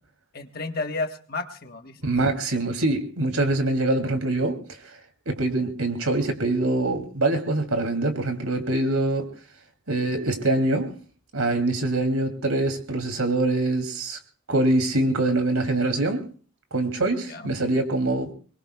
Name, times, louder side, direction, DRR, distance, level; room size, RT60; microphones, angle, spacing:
voice 1, 0.3-2.1 17.3-17.5, left 3 dB, 45° left, 6 dB, 1.3 m, -32 dB
voice 2, 2.0-4.6 5.3-9.3 9.9-10.9 11.3-14.2 14.5-16.2 16.7-18.3, right 2 dB, 85° right, 6 dB, 2.8 m, -24 dB
24.5 x 21.5 x 2.3 m, 0.41 s
head